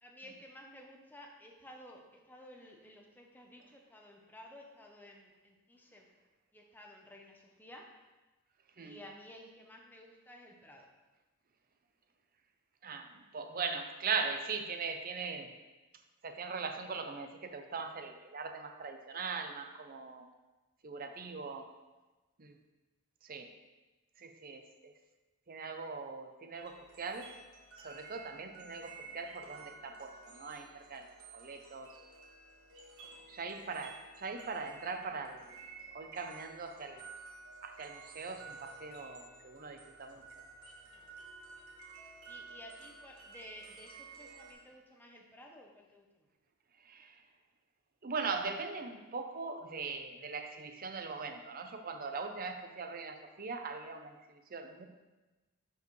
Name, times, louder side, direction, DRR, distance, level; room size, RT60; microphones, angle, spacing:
voice 1, 0.0-6.1 6.5-7.9 8.8-10.9 40.8-41.1 42.3-46.3, left 1 dB, 10° left, 0 dB, 0.8 m, -54 dB
voice 2, 12.8-15.5 16.2-20.3 20.8-21.7 22.4-22.6 23.2-23.5 24.2-24.9 25.5-27.3 27.8-32.0 33.0-35.5 35.9-37.0 37.6-40.2 46.8-47.3 48.0-54.9, right 4 dB, 40° right, 6 dB, 0.6 m, -40 dB
sound 1, 26.5-44.5, right 4 dB, 70° right, 1.3 m, -53 dB
10.5 x 4.6 x 3.2 m, 1.2 s
head